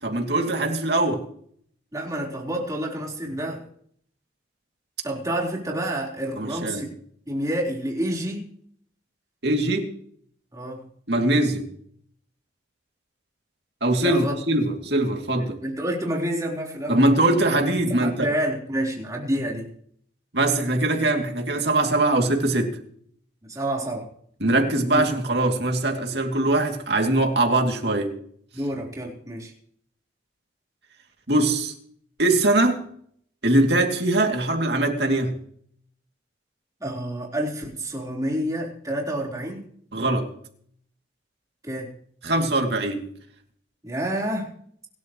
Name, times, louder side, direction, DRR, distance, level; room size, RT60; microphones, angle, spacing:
voice 1, 0.0-1.2 6.4-6.9 9.4-9.9 11.1-11.7 13.8-15.6 16.9-18.3 20.3-22.7 24.4-28.1 31.3-31.7 32.2-32.8 33.4-35.3 39.9-40.3 42.2-43.1, right 2 dB, 60° right, 2.8 m, -22 dB
voice 2, 1.9-3.6 5.0-6.9 7.3-8.5 10.5-10.9 14.0-14.3 15.6-17.0 17.9-19.7 23.4-24.1 24.9-25.0 28.5-29.5 36.8-39.6 41.6-41.9 43.8-44.5, right 1 dB, 20° right, 4.1 m, -28 dB
25.0 x 12.5 x 3.2 m
head